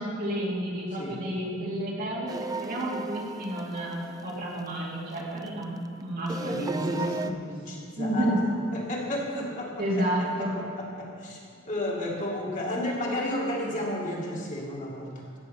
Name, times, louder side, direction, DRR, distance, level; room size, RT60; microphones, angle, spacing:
voice 1, 0.0-7.0 7.2-7.3 8.0-8.4 9.8-10.5, right 1 dB, 45° right, -4 dB, 2.5 m, -31 dB
sound 1, 2.3-5.6 6.3-7.3, right 3 dB, 20° right, 0.4 m, -36 dB
voice 2, 6.4-8.4 8.7-11.4 11.6-15.2, left 1 dB, 40° left, -4 dB, 2.6 m, -33 dB
16.0 x 6.6 x 6.9 m, 2.3 s
head